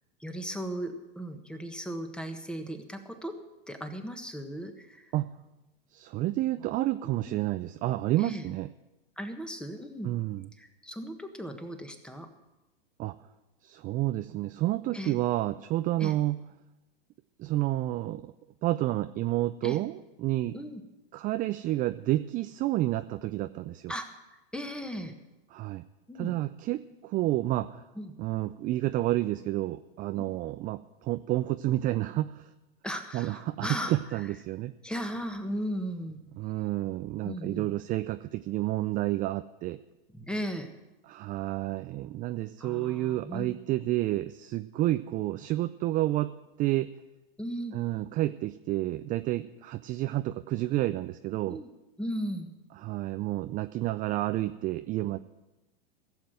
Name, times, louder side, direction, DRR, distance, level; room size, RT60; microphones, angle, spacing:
voice 1, 0.2-3.3 3.7-5.1 7.0-7.4 8.2-8.5 9.2-10.1 10.6-12.3 14.9-15.2 16.0-16.2 19.6-19.8 20.5-20.8 23.9-24.1 24.5-25.1 26.1-26.3 27.9-28.1 30.1-30.3 32.8-34.0 34.8-36.2 37.2-37.6 40.1-40.7 42.6-43.5 47.4-47.8 51.5-51.7 52.0-52.5, equal, 5° left, 6 dB, 1.4 m, -36 dB
voice 2, 5.9-8.7 10.0-10.5 13.0-13.2 13.6-16.4 17.4-18.3 18.6-20.6 21.1-23.9 25.5-25.8 26.2-27.8 28.2-32.5 33.1-34.7 36.4-39.8 41.1-46.9 47.7-51.6 52.8-55.2, right 16 dB, 30° right, 11 dB, 0.4 m, -30 dB
16.0 x 7.5 x 7.9 m, 1.0 s
hypercardioid pair, 105°, 29 cm